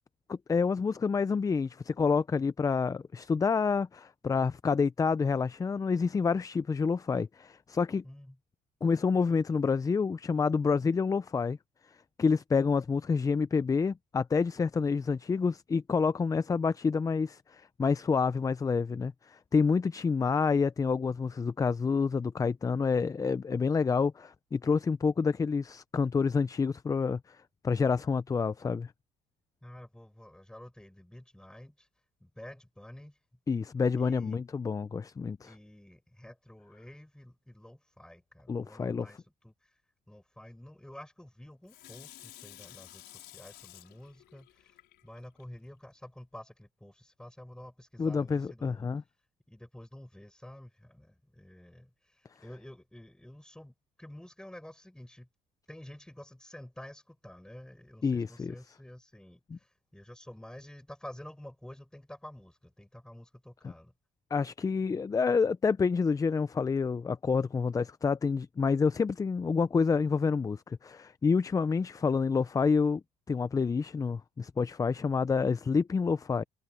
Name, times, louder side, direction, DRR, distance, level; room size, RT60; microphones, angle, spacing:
voice 1, 0.3-8.0 8.8-11.6 12.2-27.4 27.6-28.9 33.5-35.5 38.5-39.1 48.0-49.0 58.0-58.5 59.5-59.6 63.6-63.7 64.3-73.0 73.3-76.4, left 5 dB, 20° left, 0.4 m, -28 dB
voice 2, 8.0-8.4 29.6-31.9 32.2-33.2 34.0-34.4 35.4-39.5 40.1-44.8 45.0-48.9 49.5-55.3 55.7-63.9, left 1 dB, 5° left, 7.5 m, -50 dB
Water tap faucet / Sink (filling or washing), 41.7-45.4 45.9-46.0, left 14 dB, 80° left, 4.9 m, -52 dB
cardioid pair, 110°, 17 cm